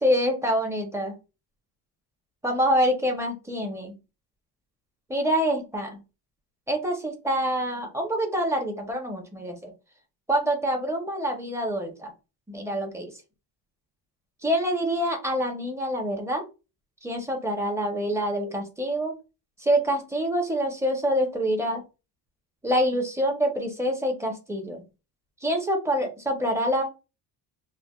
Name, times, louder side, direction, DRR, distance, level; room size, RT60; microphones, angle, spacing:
voice 1, 0.0-1.1 2.4-3.9 5.1-6.0 6.7-9.7 10.3-12.1 12.5-13.1 14.4-16.4 17.0-19.1 19.6-21.8 22.6-24.8 25.4-26.8, equal, 5° right, 2 dB, 0.7 m, -26 dB
3.2 x 2.2 x 2.3 m, 0.29 s
cardioid pair, 130°, 41 cm